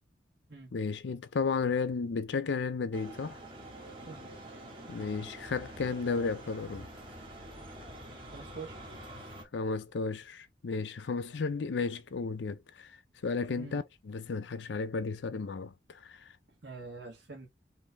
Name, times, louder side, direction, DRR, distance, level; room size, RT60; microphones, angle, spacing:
voice 1, 0.7-3.4 4.9-6.9 9.5-13.0 13.2-16.3, left 4 dB, 75° left, 0.5 m, -33 dB
sound 1, 2.9-9.4, right 1 dB, 30° right, 1.6 m, -46 dB
voice 2, 4.0-4.4 4.8-4.9 8.3-8.8 13.5-13.8 16.6-17.5, right 4 dB, 70° right, 1.6 m, -45 dB
5.3 x 2.8 x 3.4 m
head